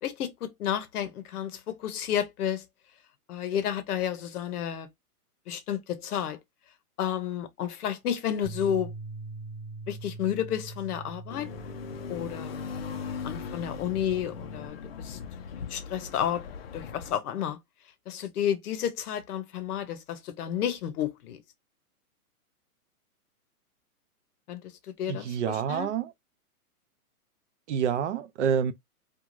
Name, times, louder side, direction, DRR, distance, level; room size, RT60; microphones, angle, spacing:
voice 1, 0.0-2.6 3.3-4.9 5.5-6.4 7.0-8.9 9.9-11.5 12.1-12.5 13.2-15.2 15.7-16.5 16.7-17.6 18.1-21.4 24.5-24.6 25.0-25.9, left 9 dB, 75° left, 0.8 m, -31 dB
Bass guitar, 8.4-14.7, right 3 dB, 15° right, 0.9 m, -43 dB
sound 1, 11.3-17.1, left 6 dB, 45° left, 0.4 m, -39 dB
voice 2, 25.1-26.1 27.7-28.7, right 8 dB, 50° right, 0.5 m, -27 dB
2.6 x 2.3 x 3.0 m
hypercardioid pair, 155°, 45 cm